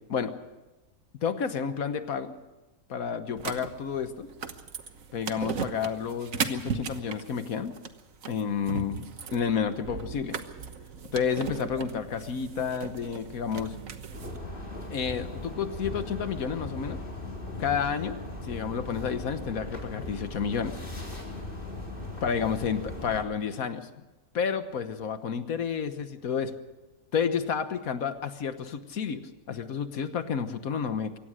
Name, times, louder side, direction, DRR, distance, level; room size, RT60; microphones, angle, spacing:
voice 1, 1.2-2.3 2.9-4.3 5.1-7.7 8.3-10.4 11.1-13.7 14.9-17.0 17.6-20.8 22.2-23.9 24.3-26.5 27.1-31.2, left 7 dB, 80° left, 10 dB, 1.5 m, -30 dB
sound 1, 3.4-14.4, right 6 dB, 70° right, 1.6 m, -37 dB
sound 2, 14.1-23.2, left 2 dB, 35° left, 4.5 m, -38 dB
23.5 x 17.5 x 6.5 m, 1.1 s
omnidirectional pair, 1.5 m